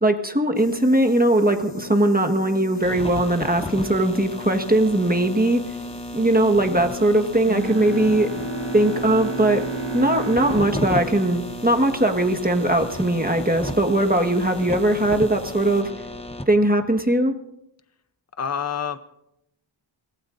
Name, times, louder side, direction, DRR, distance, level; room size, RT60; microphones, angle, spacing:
voice 1, 0.0-5.6 6.1-8.3 8.7-9.6 9.9-15.9 16.5-17.3, right 1 dB, 20° right, 4 dB, 1.5 m, -20 dB
sound 1, 0.6-15.8, equal, 90° left, 1.4 m, -41 dB
sound 2, 2.8-16.4, left 1 dB, 15° left, 1.0 m, -34 dB
Bowed string instrument, 7.4-12.6, right 2 dB, 70° right, 1.7 m, -32 dB
voice 2, 18.4-19.0, left 7 dB, 35° left, 11 dB, 0.7 m, -27 dB
26.0 x 19.0 x 2.6 m, 0.81 s
wide cardioid pair, 40°, 46 cm